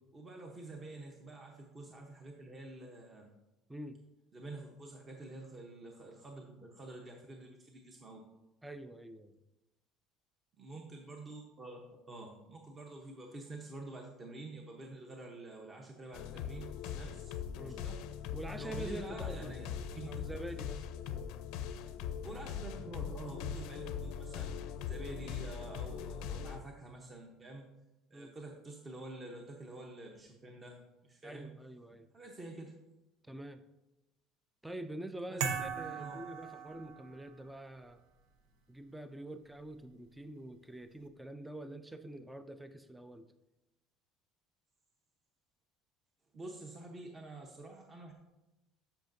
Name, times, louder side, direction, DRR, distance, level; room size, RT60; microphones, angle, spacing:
voice 1, 0.1-3.3 4.3-8.2 10.6-11.8 12.1-17.3 17.6-18.0 18.5-20.2 21.1-21.2 22.2-24.6 24.9-27.6 28.1-30.8 31.0-31.5 32.1-32.7 35.3-35.7 36.0-36.2 46.3-48.1, right 2 dB, 25° right, 1 dB, 0.9 m, -48 dB
voice 2, 3.7-4.0 8.6-9.4 17.0-17.1 17.6-17.8 18.3-19.5 20.1-20.9 28.1-28.3 31.2-32.1 33.2-33.6 34.6-38.0 38.7-43.3, right 1 dB, 5° right, 10 dB, 0.4 m, -46 dB
sound 1, 16.1-26.6, left 8 dB, 75° left, 0.5 m, -41 dB
sound 2, 35.4-37.3, right 6 dB, 80° right, 0.8 m, -38 dB
12.5 x 5.7 x 2.6 m, 0.98 s
cardioid pair, 140°, 0 cm